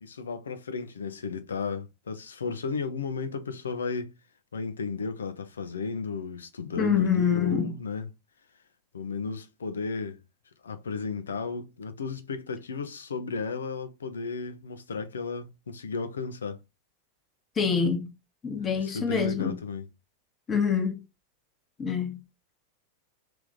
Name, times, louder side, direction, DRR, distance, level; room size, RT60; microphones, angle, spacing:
voice 1, 0.0-4.1 4.5-8.1 8.9-10.2 10.6-16.6 18.6-19.9, left 4 dB, 70° left, 0.7 m, -34 dB
voice 2, 6.8-7.7 17.6-18.1 18.4-19.6 20.5-21.0 21.8-22.2, left 6 dB, 20° left, 1.1 m, -26 dB
3.5 x 2.9 x 3.7 m
figure-of-eight pair, 90°, 0 cm